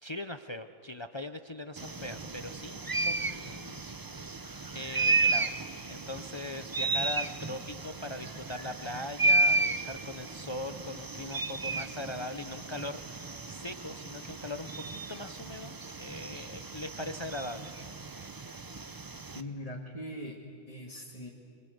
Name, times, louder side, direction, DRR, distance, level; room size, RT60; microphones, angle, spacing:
voice 1, 0.0-3.8 4.7-17.7, left 1 dB, 50° left, 9 dB, 0.3 m, -41 dB
sound 1, 1.8-19.4, right 2 dB, 35° right, 0.3 m, -33 dB
voice 2, 19.3-21.3, left 1 dB, 25° left, -2 dB, 1.9 m, -41 dB
26.5 x 22.5 x 7.9 m, 2.6 s
omnidirectional pair, 1.5 m